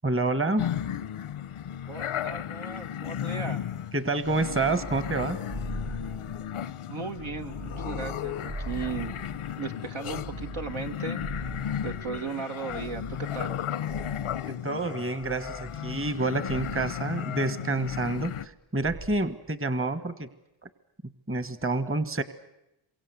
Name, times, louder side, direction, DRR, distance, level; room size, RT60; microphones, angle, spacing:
voice 1, 0.0-0.7 3.9-5.4 14.5-20.3 21.3-22.2, right 2 dB, 25° right, 12 dB, 1.6 m, -28 dB
sound 1, 0.6-18.5, left 10 dB, 90° left, 0.9 m, -35 dB
voice 2, 1.9-3.6 6.9-9.2 9.6-11.2 11.8-13.6, right 5 dB, 70° right, 4 dB, 2.1 m, -36 dB
sound 2, 4.2-6.7 7.1-9.6 10.0-12.2 12.7-14.6 15.2-16.2 16.5-17.0 17.8-18.6 18.8-19.3, right 2 dB, 85° right, 3.8 m, -41 dB
27.5 x 24.0 x 8.2 m, 0.87 s
cardioid pair, 70°, 49 cm